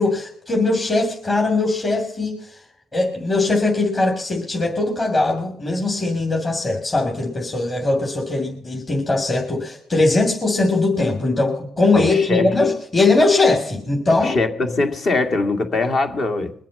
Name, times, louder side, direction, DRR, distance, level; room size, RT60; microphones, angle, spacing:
voice 1, 0.0-2.4 2.9-14.4, left 2 dB, 30° left, 2.8 m, -20 dB
voice 2, 11.9-12.5 14.2-16.5, left 3 dB, 55° left, 2.1 m, -22 dB
22.5 x 7.5 x 5.5 m
cardioid pair, 90°, 0 cm